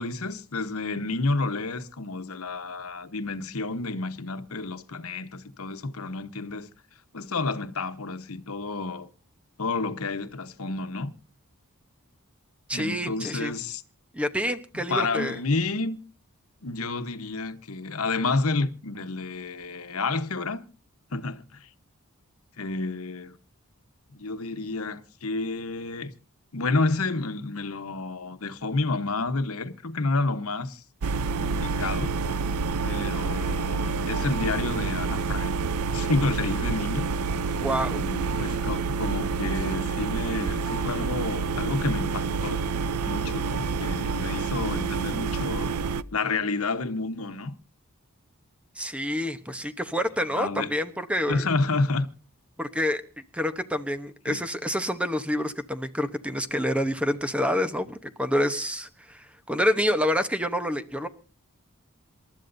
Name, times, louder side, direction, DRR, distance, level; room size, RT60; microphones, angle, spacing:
voice 1, 0.0-6.7 7.1-9.1 9.6-11.1 12.7-13.8 14.9-16.0 16.6-20.6 21.1-21.7 22.6-23.4 24.1-26.1 26.5-30.8 31.4-32.2 32.8-35.6 35.9-37.1 37.9-42.7 43.1-45.7 46.1-47.5 50.4-50.7 51.3-52.1 54.3-54.4, left 3 dB, 75° left, 1.1 m, -30 dB
voice 2, 12.7-13.6 14.1-15.4 37.6-38.0 48.8-51.5 52.6-53.0 53.3-61.1, equal, 5° right, 0.9 m, -27 dB
sound 1, 31.0-46.0, right 4 dB, 90° right, 0.6 m, -28 dB
27.5 x 12.5 x 2.7 m
head